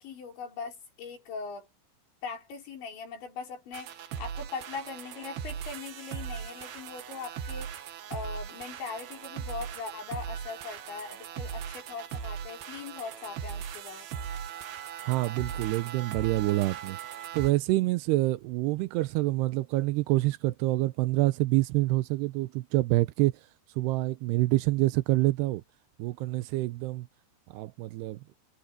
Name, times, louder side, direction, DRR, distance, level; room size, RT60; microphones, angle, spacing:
voice 1, 0.0-1.7 2.2-14.1, left 5 dB, 70° left, 7.6 m, -40 dB
sound 1, 3.7-17.5, right 8 dB, 60° right, 3.3 m, -39 dB
voice 2, 15.0-17.0 17.3-23.3 23.8-25.6 26.0-27.1 27.5-28.2, right 18 dB, 85° right, 2.4 m, -27 dB
omnidirectional pair, 5.5 m